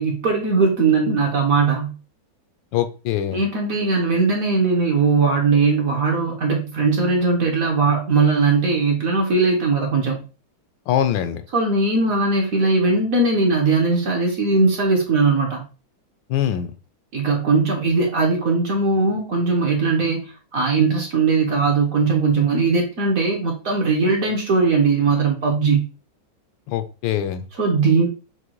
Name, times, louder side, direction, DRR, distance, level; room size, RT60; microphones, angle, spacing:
voice 1, 0.0-2.0 3.3-10.2 11.5-15.6 17.1-25.8 27.6-28.1, right 4 dB, 55° right, 1 dB, 1.0 m, -19 dB
voice 2, 2.7-3.4 10.9-11.4 16.3-16.7 26.7-27.5, left 10 dB, 80° left, 9 dB, 1.3 m, -23 dB
6.1 x 2.2 x 2.9 m, 0.34 s
omnidirectional pair, 2.1 m